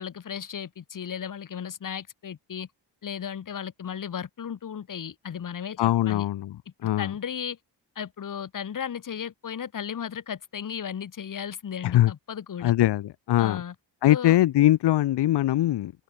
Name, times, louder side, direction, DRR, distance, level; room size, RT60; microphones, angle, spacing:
voice 1, 0.0-2.7 3.0-6.3 6.8-7.6 7.9-12.7 13.4-13.7 14.1-14.4, left 8 dB, 45° left, 2.8 m, -35 dB
voice 2, 5.8-6.5 6.8-7.1 11.8-12.1 12.6-13.6 14.0-15.9, left 14 dB, 65° left, 0.8 m, -21 dB
open air
wide cardioid pair, 175°, 43 cm